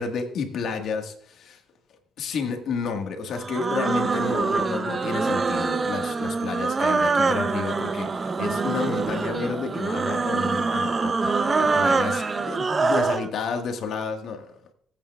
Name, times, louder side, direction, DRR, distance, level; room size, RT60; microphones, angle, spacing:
voice 1, 0.0-1.6 2.2-14.5, left 5 dB, 70° left, 1.5 m, -31 dB
sound 1, 3.4-13.3, right 4 dB, 35° right, 0.6 m, -24 dB
19.5 x 8.5 x 2.3 m
cardioid pair, 95°, 0 cm